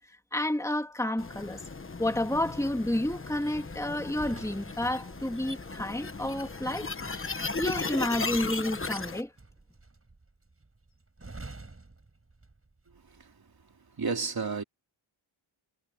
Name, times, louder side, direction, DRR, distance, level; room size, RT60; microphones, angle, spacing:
voice 1, 0.3-1.6 2.0-6.9 7.6-9.3, left 1 dB, 5° left, 2.5 m, -30 dB
sound 1, 1.2-9.2, left 3 dB, 25° left, 1.2 m, -37 dB
sound 2, 3.5-12.8 13.1-13.4, right 3 dB, 30° right, 7.6 m, -49 dB
voice 2, 14.0-14.6, right 5 dB, 50° right, 3.4 m, -30 dB
wide cardioid pair, 125°, 48 cm